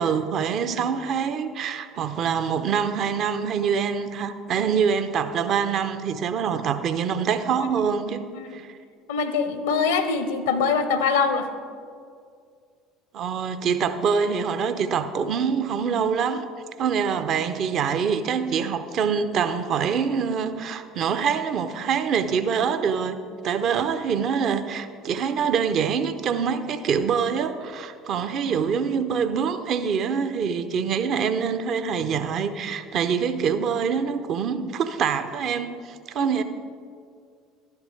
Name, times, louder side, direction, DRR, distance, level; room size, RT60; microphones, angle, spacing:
voice 1, 0.0-8.3 8.5-8.8 13.1-16.5 16.8-23.2 23.4-36.4, right 6 dB, 50° right, 10 dB, 0.6 m, -25 dB
voice 2, 9.1-11.5 36.2-36.3, left 5 dB, 75° left, 10 dB, 0.6 m, -24 dB
12.0 x 10.5 x 3.2 m, 2.3 s
figure-of-eight pair, 60°, 0 cm